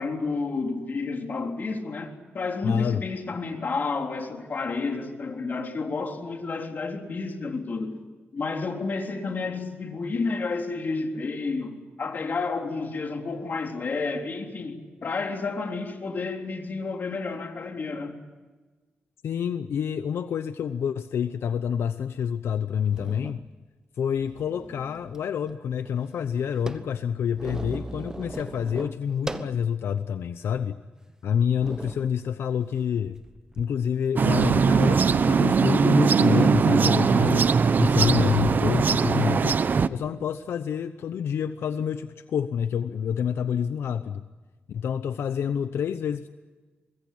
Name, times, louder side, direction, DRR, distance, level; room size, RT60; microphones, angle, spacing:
voice 1, 0.0-8.0 8.3-18.2, left 4 dB, 50° left, 3.7 m, -30 dB
voice 2, 2.6-3.0 19.2-23.4 24.0-30.8 31.2-33.2 33.6-37.5 37.8-39.6 39.9-44.2 44.7-46.3, left 8 dB, 85° left, 0.8 m, -28 dB
sound 1, 22.2-22.3 22.9-23.5 24.1-25.2 25.5-25.6 25.8-29.6 30.2-30.3 31.0-31.1 31.6-32.1 33.0-33.6, right 2 dB, 15° right, 1.2 m, -38 dB
sound 2, 34.2-39.9, right 5 dB, 50° right, 0.8 m, -20 dB
25.0 x 21.5 x 8.6 m
wide cardioid pair, 110°, 4 cm